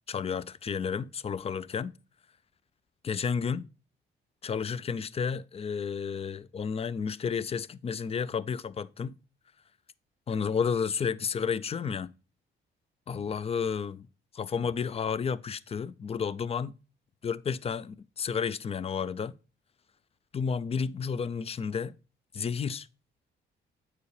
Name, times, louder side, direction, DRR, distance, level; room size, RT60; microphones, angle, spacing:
voice 1, 0.1-1.9 3.0-3.7 4.4-9.1 10.3-12.1 13.1-14.0 14.3-16.7 17.2-19.3 20.3-21.9 22.3-22.9, left 6 dB, 30° left, 0.4 m, -31 dB
8.3 x 4.7 x 3.2 m
cardioid pair, 90°, 20 cm